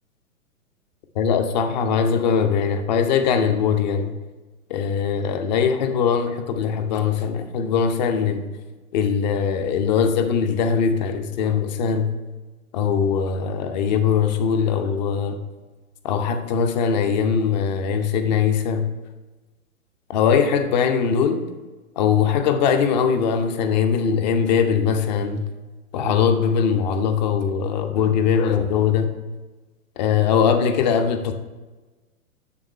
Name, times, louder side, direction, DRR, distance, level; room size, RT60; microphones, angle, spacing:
voice 1, 1.1-4.1 4.7-8.5 8.9-12.1 12.7-15.4 16.0-18.9 20.1-21.4 22.0-25.4 25.9-29.1 30.0-31.3, left 6 dB, 30° left, 8 dB, 0.7 m, -21 dB
9.3 x 3.6 x 5.5 m, 1.2 s
figure-of-eight pair, 115°, 43 cm